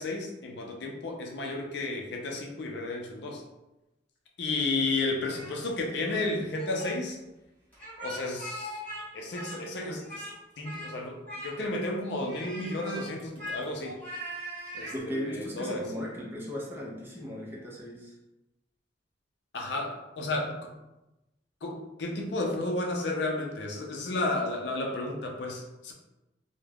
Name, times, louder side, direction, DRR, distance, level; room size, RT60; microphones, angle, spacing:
voice 1, 0.0-3.4 4.4-7.2 8.0-8.8 9.1-10.3 10.6-14.0 14.7-15.9 19.5-20.7 21.6-25.9, left 2 dB, 65° left, 1 dB, 0.5 m, -32 dB
Speech, 5.3-6.3 6.5-6.9 7.7-9.0 9.3-10.3 10.6-10.9 11.2-11.8 12.2-15.0, equal, 10° left, 1.1 m, -40 dB
voice 2, 14.9-18.1, equal, 10° right, -4 dB, 0.5 m, -37 dB
2.3 x 2.1 x 3.3 m, 0.97 s
head